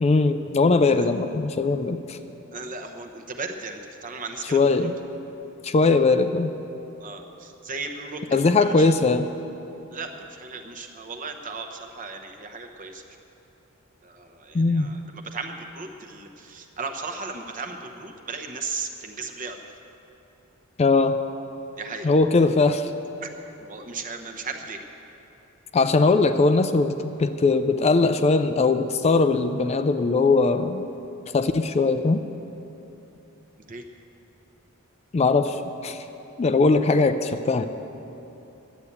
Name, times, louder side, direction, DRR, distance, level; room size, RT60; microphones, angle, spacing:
voice 1, 0.0-2.2 4.4-5.0 5.6-6.5 8.3-9.3 14.5-14.9 20.8-21.2 22.0-22.9 25.7-30.9 31.3-32.2 35.1-36.0 36.4-37.6, left 3 dB, 30° left, 9 dB, 0.4 m, -20 dB
voice 2, 2.5-4.9 7.0-8.9 9.9-13.0 14.0-15.0 15.3-19.6 21.8-22.1 23.2-23.3 23.6-24.8 33.7-33.8, right 4 dB, 40° right, 5 dB, 0.9 m, -36 dB
11.5 x 8.1 x 8.6 m, 3.0 s
head